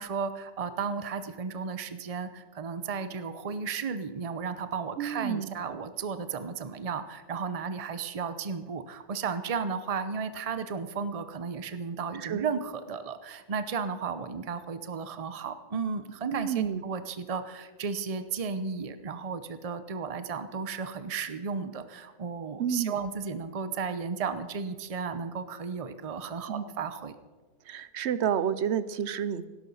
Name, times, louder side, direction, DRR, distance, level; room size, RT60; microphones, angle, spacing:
voice 1, 0.0-27.1, right 5 dB, 35° right, 11 dB, 0.8 m, -34 dB
voice 2, 5.0-5.6 12.1-12.5 16.3-16.8 22.6-23.1 26.5-26.7 27.7-29.4, right 8 dB, 70° right, 15 dB, 1.0 m, -30 dB
17.0 x 12.5 x 5.6 m, 1.4 s
omnidirectional pair, 1.2 m